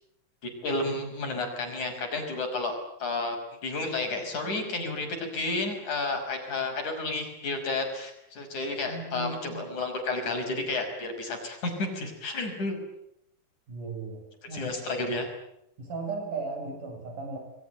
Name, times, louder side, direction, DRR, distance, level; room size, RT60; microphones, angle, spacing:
voice 1, 0.4-2.8 3.0-3.4 3.6-12.8 14.5-15.3, left 2 dB, 60° left, 4 dB, 7.2 m, -31 dB
voice 2, 8.9-9.6 13.7-14.8 15.8-17.4, right 3 dB, 65° right, 4 dB, 9.1 m, -36 dB
29.5 x 21.5 x 9.1 m, 0.80 s
omnidirectional pair, 3.9 m